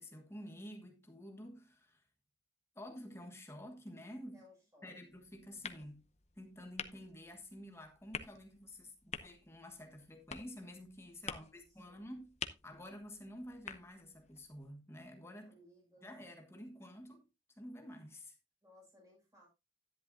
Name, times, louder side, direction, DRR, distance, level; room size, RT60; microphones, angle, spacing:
voice 1, 0.0-2.0 2.7-4.4 4.8-6.0 6.4-12.3 12.6-15.5 16.0-17.2 17.6-18.3, left 1 dB, 15° left, 1.4 m, -50 dB
voice 2, 4.3-4.9 11.2-12.0 15.4-16.1 18.6-19.5, left 2 dB, 15° right, 6.8 m, -63 dB
sound 1, 5.1-14.7, left 6 dB, 35° left, 0.7 m, -49 dB
10.5 x 10.5 x 2.7 m
head